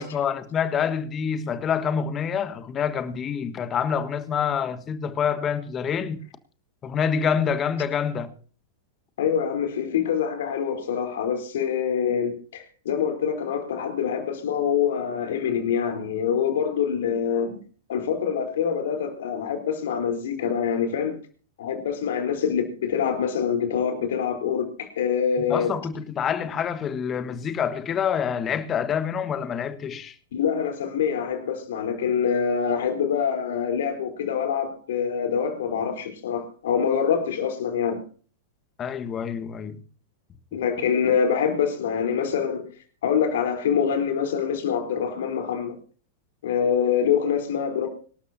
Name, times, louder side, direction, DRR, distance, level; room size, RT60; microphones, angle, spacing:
voice 1, 0.0-6.2 6.8-8.3 25.5-30.1 38.8-39.8, left 7 dB, 30° left, 1.6 m, -27 dB
voice 2, 9.2-17.6 17.9-21.2 21.6-25.7 30.3-38.0 40.5-42.7 43.0-45.8 46.4-47.9, left 7 dB, 65° left, 4.0 m, -25 dB
25.5 x 12.5 x 2.8 m
figure-of-eight pair, 95°, 0 cm